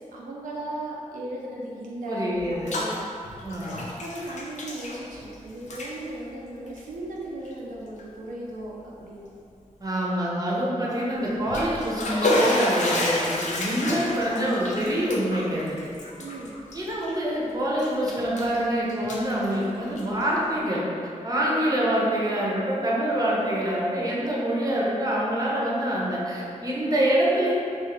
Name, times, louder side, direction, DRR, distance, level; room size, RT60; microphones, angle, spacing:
voice 1, 0.1-2.4 2.8-3.1 3.3-9.3 10.7-11.2 16.2-16.6 21.4-21.6, right 1 dB, 85° right, -4 dB, 0.4 m, -37 dB
voice 2, 2.0-2.8 3.4-3.7 9.8-15.8 16.7-20.8 21.2-27.5, right 1 dB, 25° right, -5 dB, 0.7 m, -26 dB
Bathtub (filling or washing), 2.3-3.0 3.2-5.3 5.6-5.9 6.7-6.8 7.4-7.5 8.0-8.1 11.3-17.4 17.8-18.6 18.9-20.2, left 1 dB, 60° left, 0.5 m, -29 dB
2.7 x 2.4 x 2.9 m, 2.5 s
cardioid pair, 65°, 14 cm